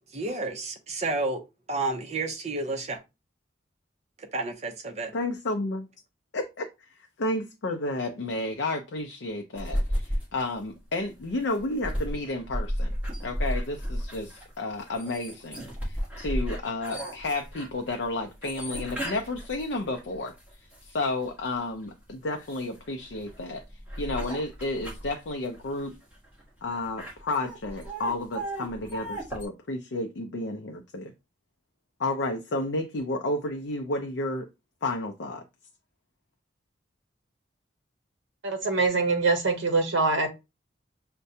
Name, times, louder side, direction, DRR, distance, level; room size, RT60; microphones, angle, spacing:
voice 1, 0.1-1.4 1.7-3.0 4.2-5.1, right 2 dB, 35° right, 0.6 m, -31 dB
voice 2, 5.1-5.9 6.3-12.9 13.2-23.6 24.0-25.9 26.6-31.1 32.0-34.5 34.8-35.4, left 2 dB, 65° left, 0.5 m, -32 dB
sound 1, 9.6-21.3 21.8-29.5, equal, 5° right, 1.2 m, -34 dB
voice 3, 38.4-40.3, right 3 dB, 70° right, 0.8 m, -24 dB
6.3 x 2.2 x 2.7 m
head